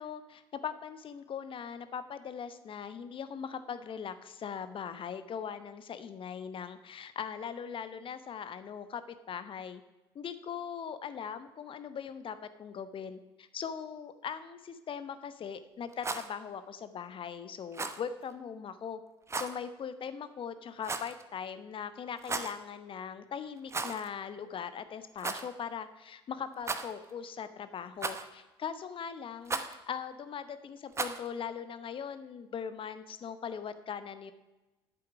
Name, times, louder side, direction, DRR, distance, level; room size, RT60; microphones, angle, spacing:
voice 1, 0.0-9.8 10.1-19.0 19.3-34.3, left 7 dB, 40° left, 12 dB, 0.9 m, -40 dB
Rattle, 15.9-16.3 17.7-18.0 19.3-19.6 20.8-21.2 22.2-22.6 23.7-24.1 24.4-24.5 25.2-25.5 26.6-27.1 28.0-28.4 29.5-29.8 30.9-31.3, right 3 dB, 20° right, 0.9 m, -35 dB
11.0 x 7.7 x 5.0 m, 1.1 s
figure-of-eight pair, 55°, 13 cm